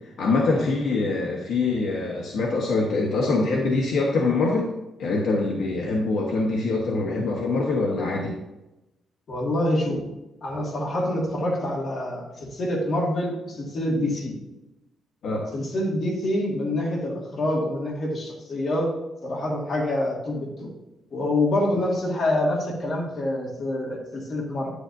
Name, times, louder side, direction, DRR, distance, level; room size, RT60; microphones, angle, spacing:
voice 1, 0.2-4.7 5.0-8.4 15.2-15.5, left 3 dB, 65° left, -2 dB, 1.2 m, -24 dB
voice 2, 9.3-10.0 10.4-14.4 15.5-18.9 19.2-20.7 21.1-24.7, left 1 dB, 40° left, -2 dB, 2.0 m, -26 dB
9.9 x 8.2 x 2.6 m, 0.98 s
cardioid pair, 175°, 0 cm